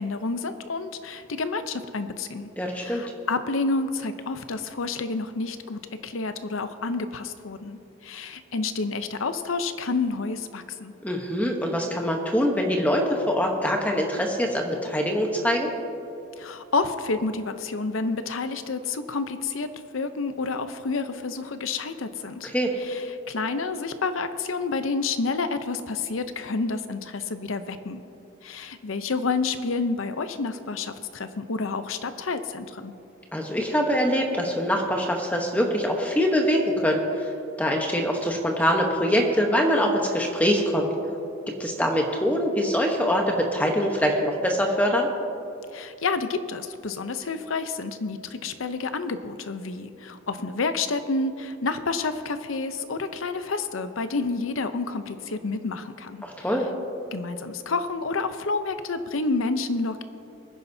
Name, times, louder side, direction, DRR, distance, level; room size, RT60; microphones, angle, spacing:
voice 1, 0.0-2.5 2.8-10.9 16.4-22.5 22.8-28.0 28.4-32.9 45.7-56.2 57.1-60.0, left 3 dB, 80° left, 10 dB, 0.7 m, -29 dB
voice 2, 2.6-3.0 11.0-15.7 22.4-22.7 33.3-37.3 37.6-40.9 41.5-45.1 56.2-56.7, equal, 5° left, 1 dB, 1.0 m, -24 dB
22.5 x 10.0 x 2.8 m, 2.7 s
head